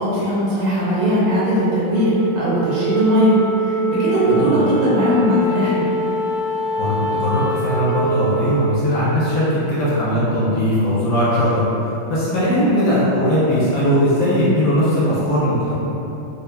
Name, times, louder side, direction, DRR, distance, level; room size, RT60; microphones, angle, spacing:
voice 1, 0.0-5.8 12.5-12.7, equal, 75° right, -9 dB, 1.7 m, -19 dB
Wind instrument woodwind instrument, 1.9-10.5, right 2 dB, 55° right, 1.6 m, -25 dB
voice 2, 6.7-11.7 12.1-15.8, equal, 65° left, -10 dB, 1.1 m, -19 dB
4.3 x 2.8 x 2.2 m, 3.0 s
omnidirectional pair, 2.3 m